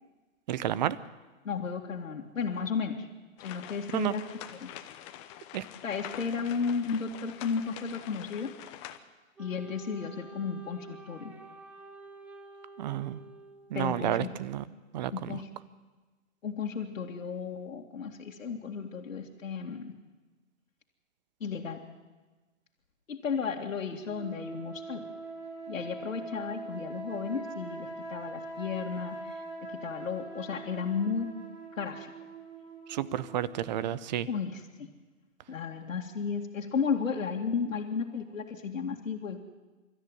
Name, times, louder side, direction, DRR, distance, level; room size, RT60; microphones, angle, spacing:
voice 1, 0.5-1.0 3.9-4.1 5.5-5.6 12.8-13.2 13.7-14.6 14.9-15.4 32.9-34.3, right 11 dB, 35° right, 17 dB, 0.8 m, -31 dB
voice 2, 1.4-3.1 3.4-4.2 4.6-4.7 5.8-8.6 9.4-11.4 13.7-14.3 15.1-15.5 16.4-19.9 21.4-21.8 23.1-25.1 25.7-31.3 31.7-32.1 34.3-34.9 35.5-39.4, left 6 dB, 70° left, 0 dB, 2.4 m, -34 dB
sound 1, 3.4-9.0, left 12 dB, 25° left, 1.0 m, -45 dB
Wind instrument woodwind instrument, 9.4-14.0, right 3 dB, 5° right, 0.7 m, -49 dB
sound 2, 24.0-33.7, right 2 dB, 55° right, 7.4 m, -42 dB
24.5 x 13.5 x 9.5 m, 1.2 s
hypercardioid pair, 135°, 40 cm